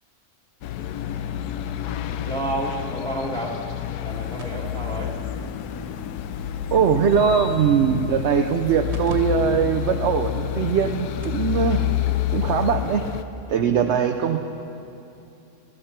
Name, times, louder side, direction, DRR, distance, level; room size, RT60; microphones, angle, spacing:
sound 1, 0.6-13.2, left 11 dB, 85° left, 1.1 m, -29 dB
voice 1, 2.2-3.6 4.0-5.1 13.5-13.7, right 1 dB, 5° left, -3 dB, 1.6 m, -30 dB
sound 2, 4.1-12.8, left 8 dB, 70° left, 1.0 m, -40 dB
cable noise unplug plug back in, 4.4-9.1 9.5-9.6 10.2-10.3 10.9-11.0 11.2-11.5 12.7-12.8, left 1 dB, 45° right, 1.7 m, -42 dB
voice 2, 6.7-11.9 12.3-13.0 13.5-14.4, right 7 dB, 60° right, 6 dB, 0.7 m, -21 dB
19.5 x 14.0 x 4.4 m, 2.8 s
omnidirectional pair, 1.6 m